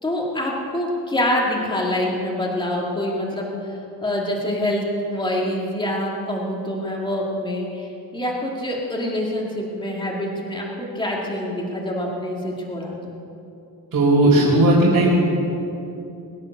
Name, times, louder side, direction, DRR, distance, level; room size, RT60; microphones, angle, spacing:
voice 1, 0.0-3.5 4.0-13.1, left 1 dB, 10° left, -2 dB, 2.4 m, -25 dB
voice 2, 13.9-15.1, right 1 dB, 50° right, -8 dB, 4.5 m, -16 dB
22.0 x 9.6 x 6.7 m, 2.7 s
cardioid pair, 155°, 39 cm